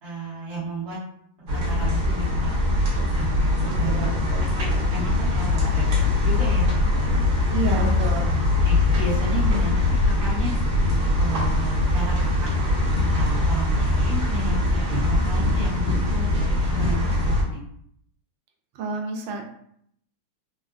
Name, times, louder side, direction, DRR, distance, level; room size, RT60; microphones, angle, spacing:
voice 1, 0.0-1.0 1.5-2.5 3.1-4.1 4.5-5.9 6.2-7.2 7.6-7.9 8.6-10.5 11.2-12.7 13.1-17.6, right 2 dB, 40° right, -9 dB, 1.1 m, -32 dB
sound 1, 1.5-17.4, left 2 dB, 60° right, 1.3 m, -22 dB
voice 2, 3.6-4.9 7.5-8.3 18.7-19.4, right 4 dB, 80° right, 2 dB, 1.3 m, -31 dB
3.6 x 2.1 x 2.4 m, 0.69 s
omnidirectional pair, 2.1 m